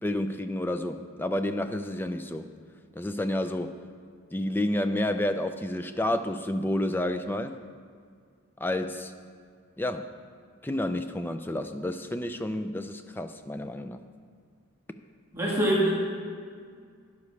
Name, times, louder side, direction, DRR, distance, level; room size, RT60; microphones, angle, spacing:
voice 1, 0.0-2.5 3.0-3.8 4.3-7.6 8.6-9.1 9.8-10.1 10.6-14.0, left 1 dB, 10° left, 8 dB, 0.3 m, -30 dB
voice 2, 15.3-15.9, right 1 dB, 10° right, -6 dB, 1.8 m, -24 dB
12.0 x 11.0 x 3.2 m, 2.1 s
head